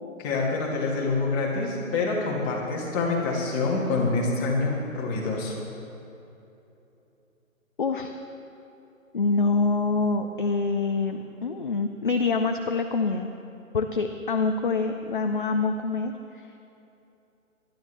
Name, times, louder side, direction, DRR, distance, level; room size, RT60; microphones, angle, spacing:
voice 1, 0.2-5.5, left 3 dB, 15° left, -2 dB, 1.7 m, -26 dB
voice 2, 7.8-8.1 9.1-13.3 13.7-16.5, left 4 dB, 40° left, 6 dB, 0.5 m, -26 dB
19.5 x 12.0 x 3.2 m, 2.9 s
figure-of-eight pair, 140°, 42 cm